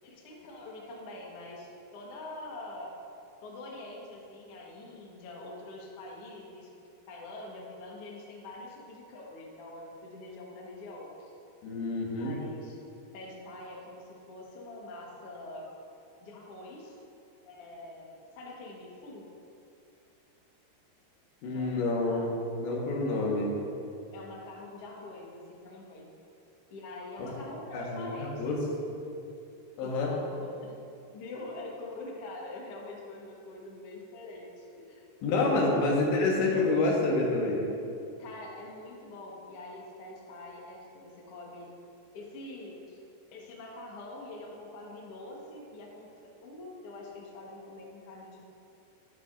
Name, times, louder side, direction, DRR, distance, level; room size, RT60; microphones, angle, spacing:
voice 1, 0.0-3.0 3.4-6.7 7.1-11.3 12.2-12.8 13.1-15.7 16.2-17.0 17.4-19.3 21.5-22.3 24.1-26.1 26.7-28.6 29.8-30.7 31.1-36.0 38.2-41.7 42.1-43.0 43.3-48.5, left 2 dB, 60° left, -3 dB, 1.5 m, -44 dB
voice 2, 11.6-12.4 21.4-22.3 22.6-23.5 27.7-28.6 29.8-30.1 35.2-37.6, left 2 dB, 90° left, -3 dB, 3.7 m, -28 dB
12.0 x 11.0 x 2.6 m, 2.7 s
omnidirectional pair, 5.0 m